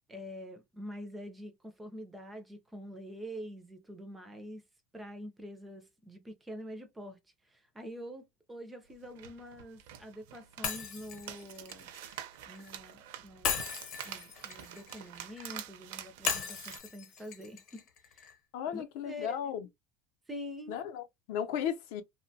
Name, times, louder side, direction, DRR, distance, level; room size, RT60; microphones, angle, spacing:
voice 1, 0.1-4.6 4.9-11.9 12.5-13.7 14.0-17.8 18.1-18.3 18.7-19.5 20.3-20.8, equal, 5° right, 0.4 m, -46 dB
sound 1, 8.9-16.8, right 11 dB, 70° right, 0.5 m, -47 dB
Shatter, 10.6-12.7 13.4-15.5 16.3-18.3, left 7 dB, 40° left, 0.8 m, -37 dB
voice 2, 18.5-19.7 20.7-22.0, left 9 dB, 65° left, 0.6 m, -35 dB
2.8 x 2.1 x 2.6 m
cardioid pair, 175°, 0 cm